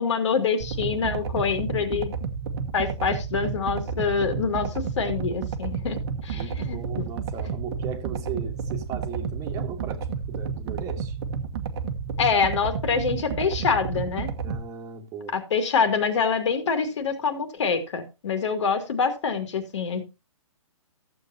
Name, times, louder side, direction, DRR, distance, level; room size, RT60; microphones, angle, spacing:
voice 1, 0.0-2.1 2.7-7.0 12.2-14.3 15.3-20.0, left 5 dB, 60° left, 2.4 m, -26 dB
sound 1, 0.6-14.6, right 5 dB, 50° right, 1.2 m, -31 dB
voice 2, 6.3-11.2 14.4-15.3, right 7 dB, 20° right, 1.5 m, -37 dB
14.5 x 7.7 x 2.8 m
hypercardioid pair, 150°, 17 cm